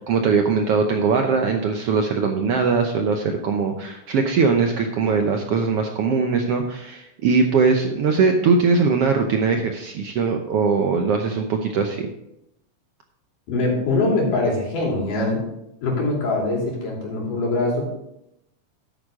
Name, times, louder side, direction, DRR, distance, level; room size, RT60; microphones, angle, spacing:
voice 1, 0.1-12.1, right 5 dB, 75° right, 4 dB, 1.4 m, -21 dB
voice 2, 13.5-15.4 15.8-17.9, left 2 dB, 80° left, -2 dB, 4.7 m, -23 dB
11.0 x 9.1 x 3.7 m, 0.81 s
omnidirectional pair, 3.7 m